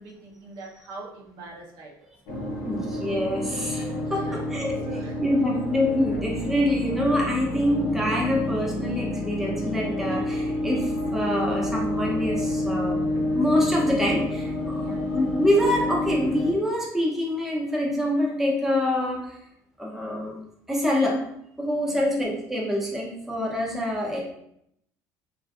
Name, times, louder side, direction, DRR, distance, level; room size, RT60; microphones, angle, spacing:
voice 1, 0.0-2.1 4.0-4.4 4.8-5.2 14.7-15.1 21.8-22.1, right 2 dB, 65° right, -2 dB, 0.7 m, -43 dB
sound 1, 2.3-16.5, left 1 dB, 90° left, 0.7 m, -29 dB
voice 2, 2.7-4.9 5.2-13.0 13.3-14.8 15.1-19.4 19.8-20.4 20.7-21.2 21.6-24.2, left 1 dB, 5° right, -2 dB, 0.5 m, -25 dB
2.5 x 2.4 x 2.3 m, 0.73 s
cardioid pair, 120°, 8 cm